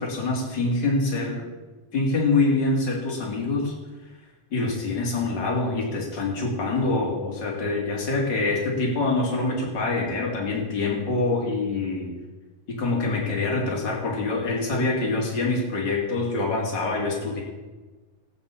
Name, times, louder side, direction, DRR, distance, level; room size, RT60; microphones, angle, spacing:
voice 1, 0.0-1.5 1.9-3.7 4.5-12.1 12.7-17.4, left 3 dB, 35° left, -2 dB, 3.0 m, -25 dB
20.0 x 8.5 x 4.3 m, 1.3 s
omnidirectional pair, 3.8 m